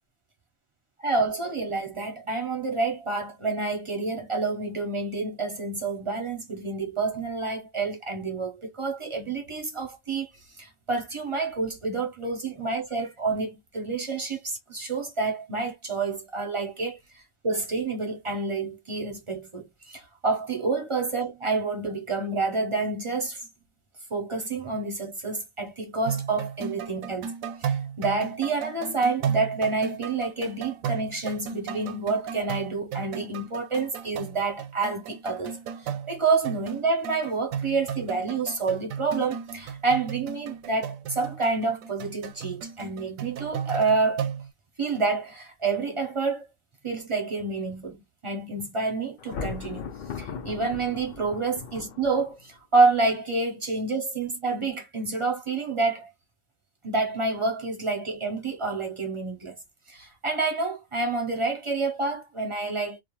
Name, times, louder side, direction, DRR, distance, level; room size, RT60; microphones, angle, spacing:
voice 1, 1.0-10.3 10.6-23.4 24.1-27.3 27.6-44.2 44.8-46.5 46.8-49.8 50.2-56.1 56.8-59.6 59.9-63.0, right 3 dB, 40° right, 0.4 m, -28 dB
sound 1, 26.1-44.5, right 7 dB, 80° right, 1.0 m, -35 dB
Thunder, 49.2-52.5, left 6 dB, 65° left, 0.4 m, -38 dB
2.4 x 2.1 x 2.9 m
omnidirectional pair, 1.4 m